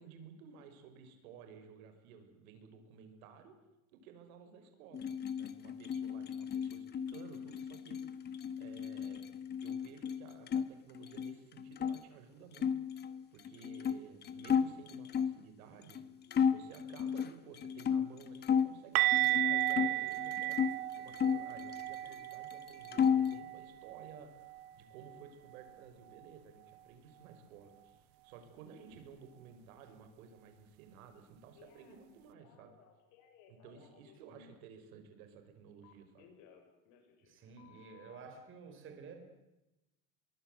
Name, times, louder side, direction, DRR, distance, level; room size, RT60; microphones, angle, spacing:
voice 1, 0.0-3.6 3.9-5.1 5.4-8.2 8.6-12.7 13.3-16.0 16.5-20.6 20.9-32.8 33.5-36.3, right 6 dB, 85° right, 7 dB, 5.5 m, -55 dB
sound 1, 4.9-10.7 11.0-12.0 12.5-15.4 15.9-16.0 16.3-18.7 19.1-20.7 21.1-22.3 22.5-23.4, left 7 dB, 25° left, 1.3 m, -34 dB
sound 2, 19.0-24.7 25.0-25.2 25.6-25.7 29.0-29.1, right 19 dB, 60° right, 1.0 m, -34 dB
Telephone, 31.5-32.1 32.4-34.1 35.8-37.3 37.6-38.2, left 8 dB, 60° left, 6.9 m, -61 dB
voice 2, 37.2-39.2, right 5 dB, 30° right, 5 dB, 4.2 m, -51 dB
25.5 x 22.5 x 8.0 m, 0.97 s
cardioid pair, 155°, 41 cm